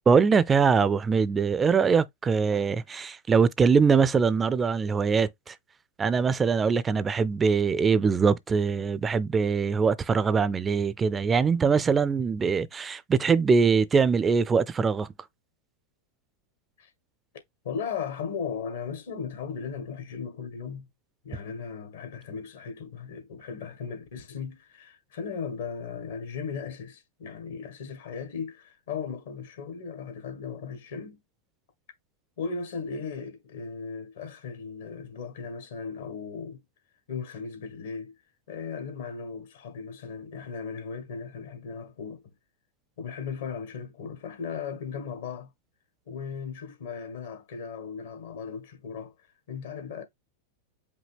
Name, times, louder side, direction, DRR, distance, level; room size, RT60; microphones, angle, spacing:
voice 1, 0.1-5.6 6.0-15.1, right 5 dB, 20° right, 0.4 m, -23 dB
voice 2, 17.6-20.9 21.2-31.2 32.4-36.6 37.1-38.1 38.5-42.2 43.0-45.5 46.1-49.1 49.5-50.0, left 6 dB, 70° left, 1.5 m, -37 dB
5.2 x 2.7 x 3.4 m
hypercardioid pair, 95°, 0 cm